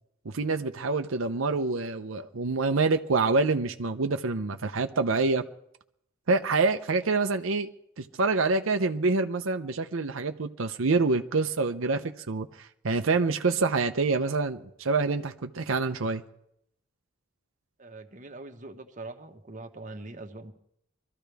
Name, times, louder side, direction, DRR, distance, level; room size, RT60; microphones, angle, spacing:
voice 1, 0.2-5.4 6.3-7.7 8.0-16.2, right 3 dB, 90° right, 0.7 m, -26 dB
voice 2, 17.8-20.5, right 2 dB, 40° right, 1.3 m, -42 dB
24.0 x 13.5 x 3.5 m
head